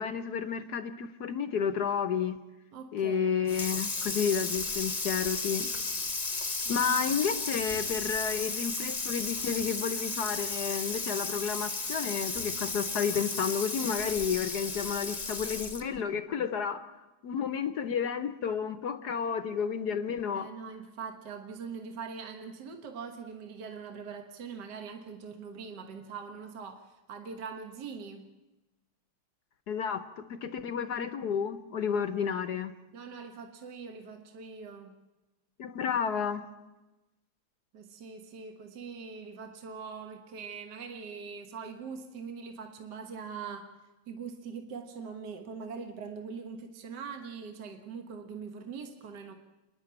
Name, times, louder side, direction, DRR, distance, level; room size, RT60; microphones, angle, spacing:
voice 1, 0.0-2.4 2.9-5.7 6.7-16.8 17.2-20.5 29.7-32.7 35.6-36.5, left 7 dB, 60° left, 1.2 m, -31 dB
voice 2, 2.7-3.5 6.7-6.8 7.1-7.2 20.3-28.3 32.9-35.0 37.7-43.7 44.1-49.3, right 5 dB, 55° right, 1.9 m, -42 dB
Water tap faucet / Sink (filling or washing), 3.5-16.0, left 3 dB, 25° left, 1.0 m, -34 dB
28.5 x 10.5 x 8.8 m
omnidirectional pair, 2.3 m